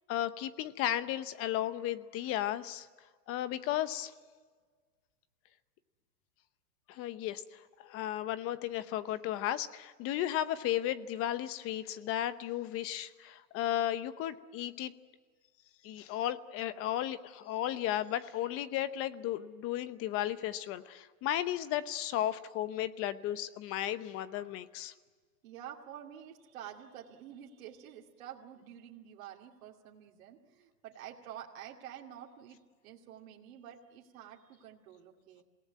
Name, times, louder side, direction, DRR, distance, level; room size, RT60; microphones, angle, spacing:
voice 1, 0.1-2.9 3.3-4.1 6.9-14.9 15.8-24.9, left 12 dB, 30° left, 14 dB, 0.9 m, -34 dB
voice 2, 25.4-35.4, right 10 dB, 60° right, -1 dB, 2.6 m, -49 dB
27.0 x 18.0 x 9.3 m, 1.5 s
hypercardioid pair, 135°, 46 cm